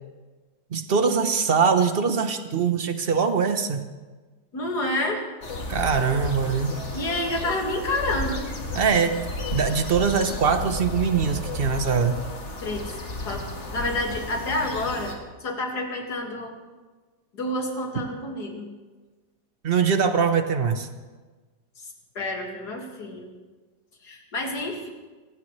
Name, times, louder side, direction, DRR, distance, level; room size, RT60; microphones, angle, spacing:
voice 1, 0.7-3.8 5.7-6.8 8.7-9.2 9.5-12.2 19.6-20.9, right 6 dB, 40° right, 8 dB, 1.0 m, -22 dB
voice 2, 4.5-5.3 6.9-8.5 12.6-16.6 17.3-18.7 21.8-21.9 22.1-23.3 24.0-24.9, left 1 dB, 60° left, 1 dB, 2.7 m, -29 dB
sound 1, 5.4-15.1, left 2 dB, 40° left, 2.0 m, -33 dB
25.0 x 16.0 x 3.3 m, 1.3 s
omnidirectional pair, 2.0 m